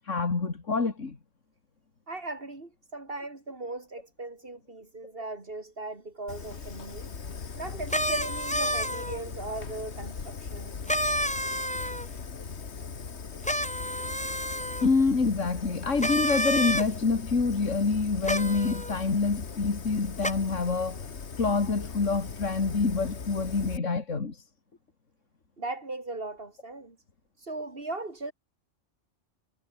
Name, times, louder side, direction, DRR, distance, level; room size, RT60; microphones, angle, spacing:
voice 1, 0.1-1.2 14.8-21.0 21.4-24.4, left 4 dB, 85° left, 2.8 m, -26 dB
voice 2, 2.1-7.1 7.6-10.8 25.6-27.0 27.4-28.3, right 2 dB, 50° right, 3.6 m, -38 dB
Fire, 6.3-23.8, left 5 dB, 65° left, 1.9 m, -39 dB
sound 1, 7.9-9.2 10.9-12.1 13.4-14.9 16.0-16.9 18.2-18.9 20.2-20.3, equal, 5° left, 4.5 m, -29 dB
omnidirectional pair, 1.2 m